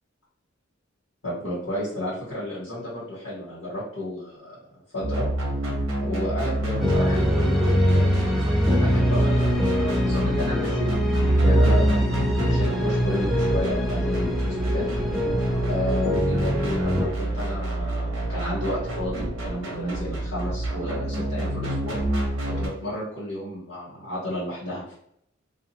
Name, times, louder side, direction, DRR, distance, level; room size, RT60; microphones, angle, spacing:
voice 1, 1.2-4.6 4.9-5.3 6.0-11.0 11.4-14.9 15.7-22.0 22.4-24.9, left 1 dB, 80° left, -8 dB, 1.4 m, -32 dB
sound 1, 5.0-22.7, right 1 dB, 80° right, 0.8 m, -27 dB
sound 2, 6.8-17.1, equal, ahead, 0.5 m, -24 dB
2.4 x 2.4 x 2.8 m, 0.72 s
head